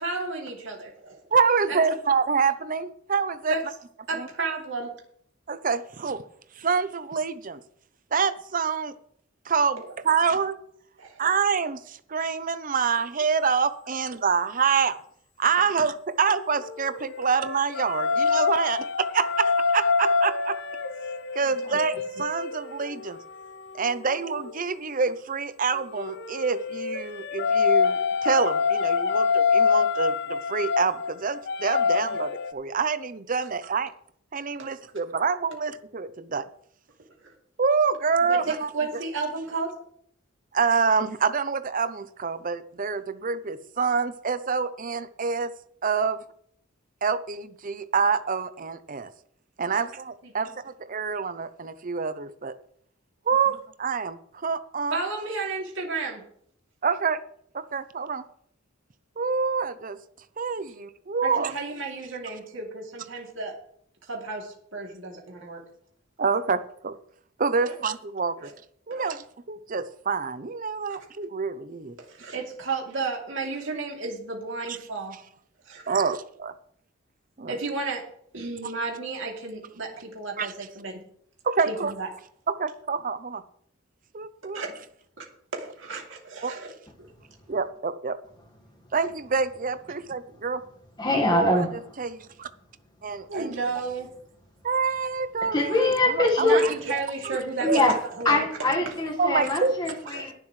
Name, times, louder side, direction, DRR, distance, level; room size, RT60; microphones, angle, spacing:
voice 1, 0.0-1.2 1.7-1.8 3.5-3.6 4.1-4.9 11.0-11.2 21.4-21.8 37.2-37.3 38.2-39.7 49.7-49.9 50.2-50.5 54.9-56.2 61.2-63.5 64.1-65.6 67.6-67.7 68.4-68.5 68.9-69.1 72.0-75.1 75.6-76.1 77.5-78.0 78.3-80.9 81.7-82.1 84.5-84.8 85.2-85.3 85.5-86.7 93.3-94.1 96.4-98.5 98.8-99.0 100.1-100.2, right 3 dB, 65° right, 0 dB, 3.0 m, -33 dB
voice 2, 1.3-3.5 4.2-4.3 5.5-6.2 6.6-7.6 8.1-8.9 9.5-10.6 11.2-15.0 15.4-20.5 21.3-23.2 23.7-33.9 34.3-36.4 37.6-38.7 40.5-45.5 45.8-46.2 47.0-49.1 49.6-52.5 53.3-55.0 56.8-57.2 57.5-58.2 59.2-60.0 60.4-61.5 66.2-66.9 67.4-68.5 68.9-72.0 74.7-74.8 75.9-76.5 77.4-77.5 80.4-80.5 81.4-81.9 82.5-83.4 84.1-84.6 86.4-86.5 87.5-88.2 88.9-90.6 91.3-91.7 92.0-92.5 93.0-93.5 94.6-97.4 97.7-97.9 99.2-99.8, right 5 dB, 40° right, 12 dB, 0.7 m, -26 dB
sound 1, 16.3-24.6 25.8-32.5, left 5 dB, 55° left, 0.7 m, -26 dB
voice 3, 91.0-91.7 95.5-96.7 97.6-98.0 98.2-100.3, left 2 dB, 20° left, 0 dB, 1.6 m, -23 dB
21.5 x 7.3 x 3.2 m, 0.66 s
head